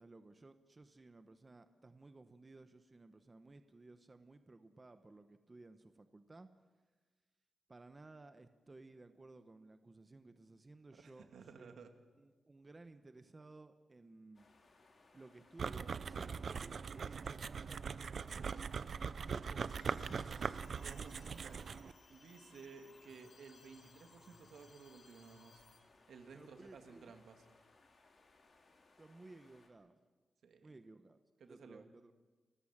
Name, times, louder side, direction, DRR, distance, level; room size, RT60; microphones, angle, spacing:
voice 1, 0.0-6.5 7.7-11.3 11.5-11.9 12.2-14.5 15.1-18.4 19.2-20.4 26.3-27.1 29.0-30.0 30.6-32.1, right 2 dB, 20° right, 9 dB, 0.9 m, -57 dB
voice 2, 10.9-11.9 20.8-25.6 26.1-27.4 30.4-30.7 31.4-31.9, right 5 dB, 80° right, 6 dB, 2.2 m, -56 dB
sound 1, 14.3-29.7, left 3 dB, 45° left, 3.0 m, -68 dB
sound 2, 15.6-21.9, right 6 dB, 50° right, 0.6 m, -41 dB
sound 3, 19.7-25.8, left 4 dB, 60° left, 3.4 m, -64 dB
29.5 x 15.0 x 7.4 m, 1.3 s
wide cardioid pair, 165°, 0 cm